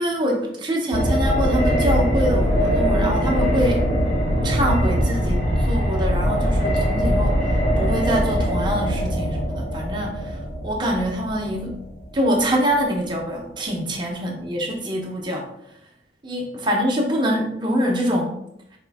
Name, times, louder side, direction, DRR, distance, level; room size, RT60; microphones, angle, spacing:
voice 1, 0.0-3.9 4.4-7.5 7.8-10.3 10.6-11.8 12.1-15.5 16.2-18.4, equal, 25° right, -1 dB, 0.8 m, -24 dB
sound 1, 0.9-12.8 13.1-13.2, equal, 40° left, 0.9 m, -22 dB
4.5 x 3.1 x 3.4 m, 0.77 s
head